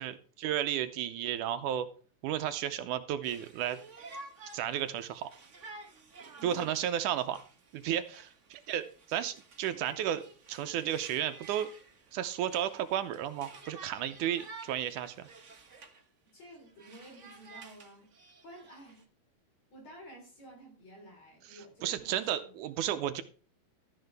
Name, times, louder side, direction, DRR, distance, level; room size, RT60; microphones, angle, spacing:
voice 1, 0.0-1.9 2.2-3.8 4.5-5.3 6.4-7.4 7.7-11.7 12.1-15.2 21.5-23.2, right 10 dB, 75° right, 10 dB, 2.0 m, -33 dB
Conversation, 3.2-16.0 16.4-19.0, right 3 dB, 45° right, 0.9 m, -52 dB
voice 2, 6.4-6.8 16.3-18.1 18.4-19.1 19.7-22.5, right 1 dB, 55° left, 1 dB, 4.8 m, -52 dB
13.0 x 10.5 x 3.4 m, 0.40 s
omnidirectional pair, 3.9 m